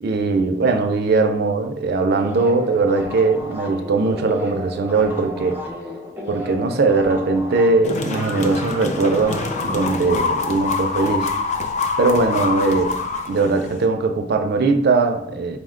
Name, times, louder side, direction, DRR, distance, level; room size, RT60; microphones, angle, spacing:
voice 1, 0.0-5.6 6.3-11.3 12.0-12.9 13.3-15.6, right 3 dB, 55° right, 0.4 m, -20 dB
sound 1, 2.1-11.3, left 1 dB, 10° right, 0.6 m, -34 dB
sound 2, 7.8-13.8, left 4 dB, 35° left, 0.4 m, -25 dB
5.2 x 2.1 x 3.6 m
head